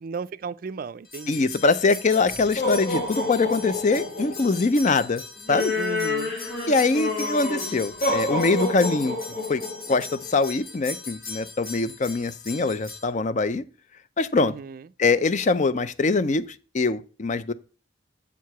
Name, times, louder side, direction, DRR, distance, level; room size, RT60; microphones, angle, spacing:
voice 1, 0.0-1.5 5.7-6.4 14.4-14.9, right 5 dB, 50° right, 0.4 m, -35 dB
sound 1, 1.1-13.0, left 2 dB, 55° left, 1.8 m, -30 dB
voice 2, 1.3-5.2 5.5-5.7 6.7-9.2 9.5-9.6 9.9-13.6 14.2-14.5 15.0-17.5, left 3 dB, 40° left, 0.5 m, -23 dB
7.1 x 4.7 x 5.7 m
head